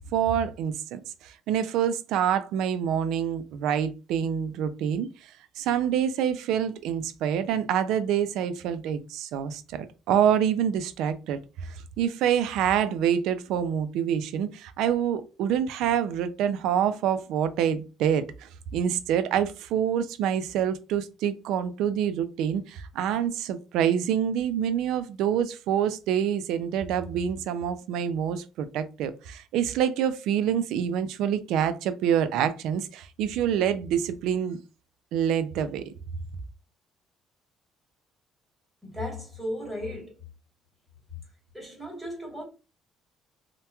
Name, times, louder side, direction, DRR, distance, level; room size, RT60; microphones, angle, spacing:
voice 1, 0.1-34.6 35.1-35.9, right 9 dB, 75° right, 0.3 m, -26 dB
voice 2, 38.8-40.1 41.5-42.4, left 1 dB, ahead, 1.3 m, -35 dB
2.8 x 2.1 x 2.2 m
cardioid pair, 125°, 0 cm